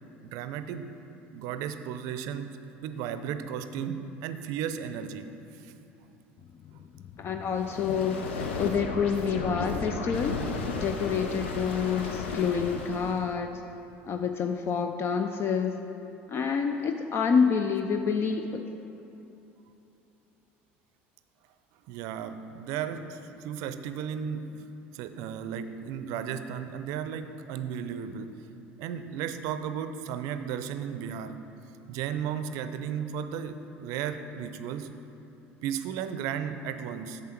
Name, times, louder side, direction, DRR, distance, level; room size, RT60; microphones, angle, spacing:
voice 1, 0.2-0.9 1.3-5.3 5.6-5.7 21.9-24.5 24.9-28.3 28.8-31.4 31.9-34.9 35.6-37.2, right 8 dB, 65° right, 10 dB, 0.5 m, -34 dB
voice 2, 7.2-10.4 10.8-13.5 14.0-15.8 16.3-18.6, left 6 dB, 40° left, 6 dB, 0.4 m, -28 dB
sound 1, 7.5-13.3, left 3 dB, 85° left, 0.7 m, -34 dB
8.2 x 6.9 x 4.5 m, 2.9 s
hypercardioid pair, 75°, 6 cm